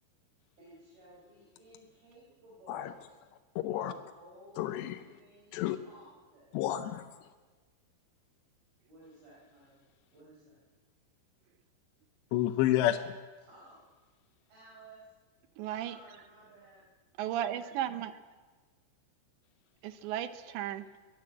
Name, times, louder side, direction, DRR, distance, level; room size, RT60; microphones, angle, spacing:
voice 1, 0.6-3.0 3.7-6.6 8.9-9.8 10.1-10.6 13.5-13.8 14.5-15.1 15.8-16.8, right 1 dB, 60° right, -5 dB, 6.8 m, -56 dB
voice 2, 3.6-3.9 4.6-5.0 5.5-5.8 6.5-7.3 12.3-13.1, left 13 dB, 80° left, 7 dB, 2.9 m, -30 dB
voice 3, 15.6-16.0 17.2-18.2 19.8-20.9, right 11 dB, 85° right, 11 dB, 3.2 m, -35 dB
23.0 x 15.5 x 7.6 m, 1.4 s
omnidirectional pair, 5.0 m